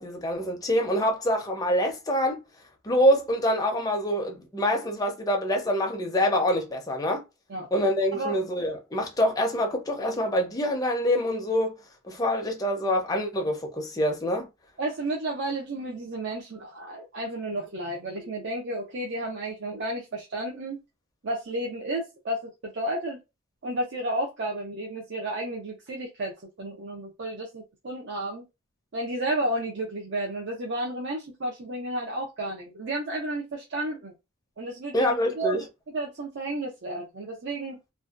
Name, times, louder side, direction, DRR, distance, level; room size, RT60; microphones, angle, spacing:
voice 1, 0.0-2.4 2.8-7.2 7.7-14.5 34.9-35.6, equal, 20° left, 0.5 m, -25 dB
voice 2, 14.8-20.8 21.2-23.2 23.6-26.3 26.6-28.4 28.9-34.1 34.6-35.7 35.9-37.8, right 1 dB, 60° right, 0.5 m, -32 dB
2.5 x 2.2 x 2.3 m
head